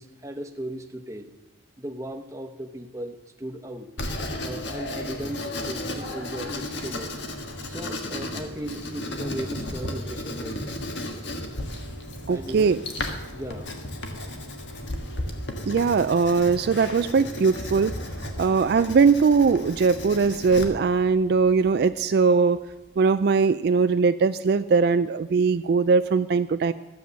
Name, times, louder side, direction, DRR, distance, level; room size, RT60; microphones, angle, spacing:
voice 1, 0.0-1.3 1.8-3.9 4.4-7.1 7.7-10.8 12.3-12.8 13.3-13.7, right 1 dB, 15° right, 4 dB, 0.9 m, -36 dB
Writing, 4.0-20.6, left 1 dB, 75° left, 1.5 m, -34 dB
sound 1, 9.4-23.4, equal, 45° left, 2.6 m, -45 dB
voice 2, 12.3-12.8 15.7-18.0 18.4-22.7 23.0-26.7, right 5 dB, 60° right, 11 dB, 0.3 m, -20 dB
13.5 x 7.8 x 6.8 m, 1.0 s
head